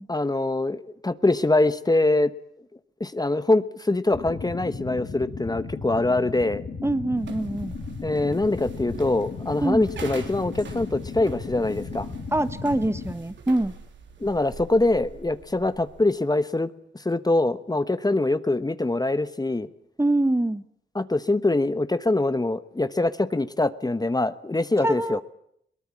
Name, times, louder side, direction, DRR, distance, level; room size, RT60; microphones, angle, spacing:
voice 1, 0.1-2.3 3.0-6.6 8.0-12.1 14.2-19.7 20.9-25.2, left 2 dB, 20° left, 14 dB, 1.1 m, -24 dB
sound 1, 4.1-13.1, left 4 dB, 70° left, 5.5 m, -36 dB
voice 2, 6.8-7.7 9.6-9.8 12.3-13.7 20.0-20.6 24.8-25.2, right 1 dB, 15° right, 14 dB, 1.2 m, -24 dB
sound 2, 7.2-16.1, right 5 dB, 85° right, 3.6 m, -44 dB
22.0 x 19.0 x 8.5 m, 0.72 s
cardioid pair, 65°, 19 cm